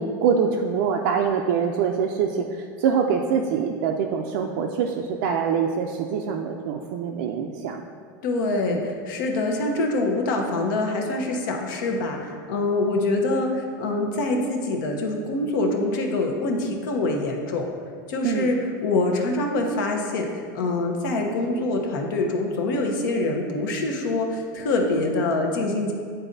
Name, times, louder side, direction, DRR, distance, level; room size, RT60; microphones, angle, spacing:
voice 1, 0.0-7.8 8.7-8.8 18.2-18.5, right 6 dB, 70° right, 1 dB, 0.4 m, -24 dB
voice 2, 8.2-17.7 18.1-25.9, left 2 dB, 80° left, 2 dB, 0.9 m, -25 dB
8.9 x 4.0 x 2.6 m, 2.2 s
supercardioid pair, 145°, 11 cm